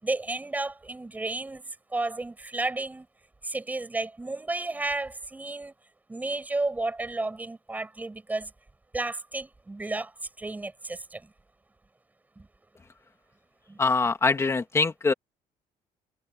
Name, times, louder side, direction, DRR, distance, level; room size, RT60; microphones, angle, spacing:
voice 1, 0.0-3.1 3.4-5.7 6.1-8.5 8.9-11.3 12.4-12.5 13.7-13.8, right 2 dB, 10° right, 6.9 m, -32 dB
voice 2, 13.8-15.1, left 4 dB, 20° left, 2.4 m, -23 dB
cardioid pair, 155°, 14 cm